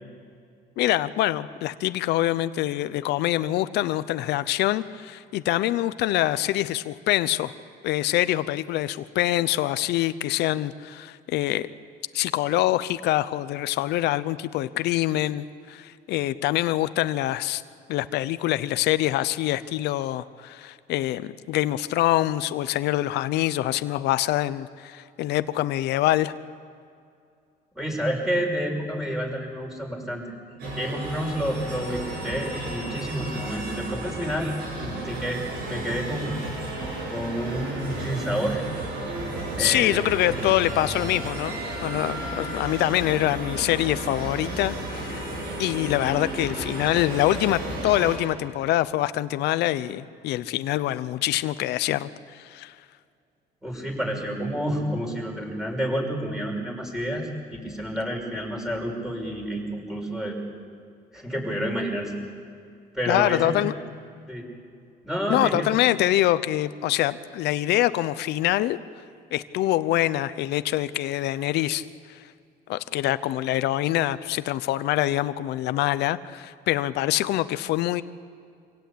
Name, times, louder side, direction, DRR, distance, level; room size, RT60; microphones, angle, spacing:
voice 1, 0.8-7.5 7.8-11.7 12.1-17.6 17.9-26.3 39.6-45.3 45.6-52.7 63.1-63.7 65.3-68.8 69.3-72.2 72.7-78.0, left 15 dB, 80° left, 14 dB, 0.8 m, -25 dB
voice 2, 27.7-30.3 30.7-36.4 37.1-38.6 39.5-40.4 53.6-60.4 61.1-62.1 62.9-63.5 64.3-64.5 65.0-65.7, equal, 5° right, 0 dB, 6.0 m, -29 dB
sound 1, 30.6-48.2, right 1 dB, 75° right, 7.9 m, -33 dB
26.0 x 17.5 x 8.7 m, 2.3 s
cardioid pair, 110°, 17 cm